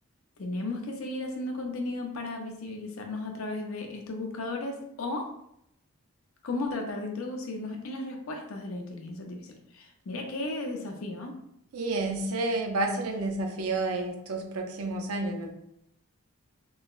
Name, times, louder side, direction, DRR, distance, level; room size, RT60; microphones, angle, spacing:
voice 1, 0.4-5.3 6.4-11.3, left 2 dB, 70° left, 3 dB, 0.5 m, -35 dB
voice 2, 11.7-15.5, right 2 dB, 80° right, 3 dB, 0.5 m, -30 dB
3.7 x 2.0 x 2.4 m, 0.78 s
head